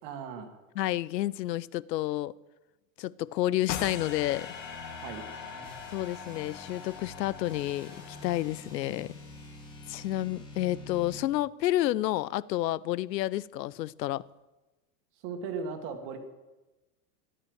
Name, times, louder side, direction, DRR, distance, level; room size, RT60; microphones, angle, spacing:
voice 1, 0.0-0.6 5.0-5.3 15.2-16.2, right 5 dB, 30° right, 6 dB, 1.8 m, -37 dB
voice 2, 0.8-2.3 3.0-4.5 5.9-9.1 9.9-14.3, left 15 dB, 85° left, 21 dB, 0.7 m, -30 dB
sound 1, 3.7-8.9, left 8 dB, 50° left, 2.1 m, -41 dB
sound 2, 3.7-11.3, left 2 dB, 10° left, 2.2 m, -47 dB
15.5 x 11.0 x 7.9 m, 1.1 s
supercardioid pair, 175°, 49 cm